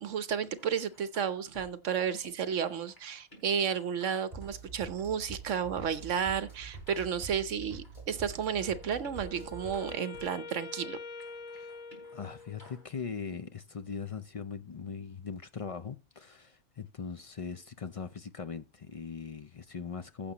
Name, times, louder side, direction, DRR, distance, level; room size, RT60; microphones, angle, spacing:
voice 1, 0.0-11.0, right 7 dB, 75° right, 1.2 m, -32 dB
sound 1, 0.5-2.3 2.6-5.1 5.5-8.0 8.3-10.9 11.2-12.9, equal, 40° left, 3.2 m, -57 dB
sound 2, 4.3-9.9, right 4 dB, 30° right, 4.3 m, -46 dB
Wind instrument woodwind instrument, 8.5-12.9, left 4 dB, 5° left, 3.8 m, -46 dB
voice 2, 12.1-20.3, left 6 dB, 55° left, 0.3 m, -40 dB
15.0 x 7.1 x 2.9 m
omnidirectional pair, 1.3 m